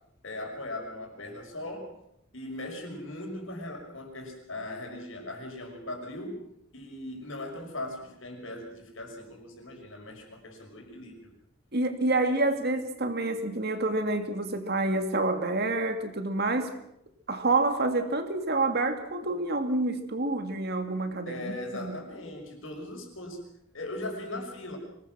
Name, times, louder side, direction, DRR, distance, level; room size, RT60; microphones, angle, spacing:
voice 1, 0.2-1.9 2.3-6.4 6.7-11.2 21.3-23.4 23.7-24.8, left 1 dB, 70° left, 5.7 m, -39 dB
voice 2, 11.7-16.7 17.3-21.5 21.8-22.0, right 2 dB, 50° right, 2.3 m, -28 dB
25.0 x 19.5 x 6.2 m
head